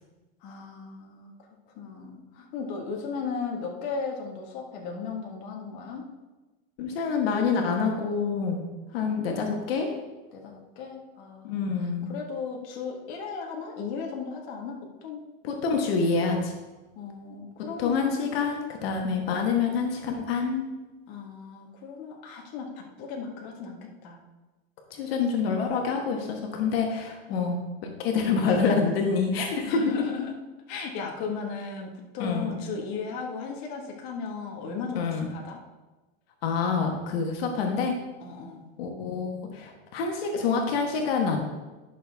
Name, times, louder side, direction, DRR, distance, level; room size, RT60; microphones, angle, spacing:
voice 1, 0.4-1.3 1.7-6.0 9.0-9.4 10.3-15.3 16.9-18.3 21.1-24.2 27.3-27.5 29.7-30.3 30.7-35.6 38.2-38.7, left 5 dB, 50° left, 0 dB, 1.6 m, -36 dB
voice 2, 6.8-8.6 8.9-9.9 11.4-12.1 15.4-16.5 17.8-20.6 24.9-27.6 28.0-29.8 32.2-32.5 34.9-35.3 36.4-37.9 38.8-41.4, left 5 dB, 80° left, 2 dB, 1.4 m, -27 dB
10.5 x 6.4 x 3.5 m, 1.2 s
supercardioid pair, 165°, 30 cm